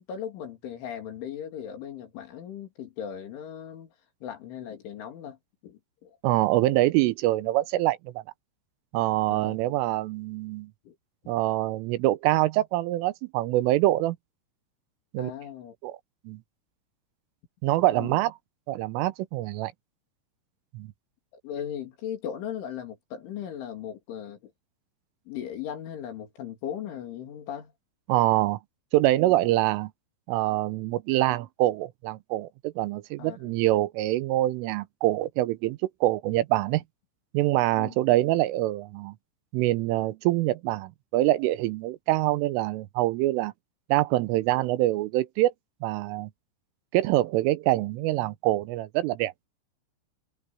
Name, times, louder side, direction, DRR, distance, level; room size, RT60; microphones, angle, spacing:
voice 1, 0.0-3.9 4.2-5.4 5.6-6.2 9.3-9.6 10.9-11.0 15.2-15.7 18.0-18.2 21.4-24.5 25.3-27.7 33.2-33.6 37.8-38.0, left 9 dB, 70° left, 5.4 m, -38 dB
voice 2, 6.2-8.1 8.9-10.7 11.3-14.2 15.1-15.3 15.8-16.0 16.3-16.4 17.6-18.3 18.7-19.7 20.7-20.9 28.1-28.6 28.9-29.9 30.3-36.8 37.3-39.2 39.5-43.5 43.9-45.5 45.8-46.3 46.9-49.3, right 16 dB, 85° right, 3.4 m, -25 dB
omnidirectional pair, 5.7 m